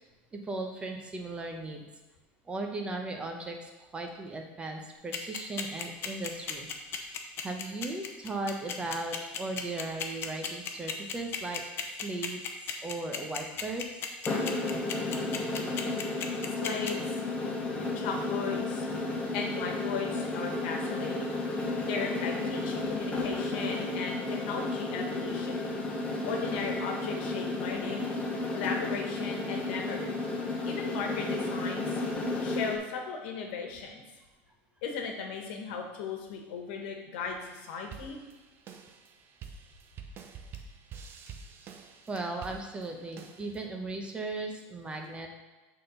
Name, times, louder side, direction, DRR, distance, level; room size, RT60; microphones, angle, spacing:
voice 1, 0.3-1.8 2.5-3.6 3.9-6.7 7.4-11.6 12.0-12.4 12.8-13.9 42.1-45.3, right 2 dB, 20° right, 3 dB, 0.9 m, -37 dB
sound 1, 5.1-16.9, left 8 dB, 40° left, 0.8 m, -34 dB
sound 2, 14.3-32.8, left 2 dB, 20° left, 1.2 m, -33 dB
voice 2, 16.6-17.2 17.9-18.9 19.3-21.4 21.8-25.6 26.2-28.1 28.5-30.2 30.6-31.9 32.4-34.0 34.8-38.2, left 5 dB, 80° left, 2 dB, 1.4 m, -37 dB
sound 3, 37.4-43.6, right 6 dB, 40° right, 0.7 m, -48 dB
6.5 x 3.9 x 5.5 m, 1.2 s
supercardioid pair, 125°, 6 cm